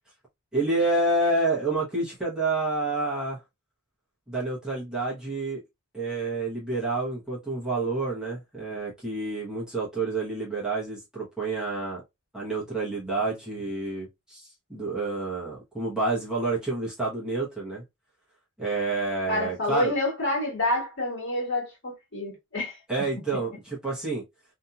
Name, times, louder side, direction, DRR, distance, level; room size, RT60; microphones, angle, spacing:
voice 1, 0.5-3.4 4.3-5.6 5.9-12.0 12.3-17.8 18.6-19.9 22.9-24.2, right 3 dB, 5° right, 1.0 m, -28 dB
voice 2, 19.3-23.1, left 1 dB, 55° left, 1.4 m, -28 dB
2.8 x 2.6 x 2.3 m
head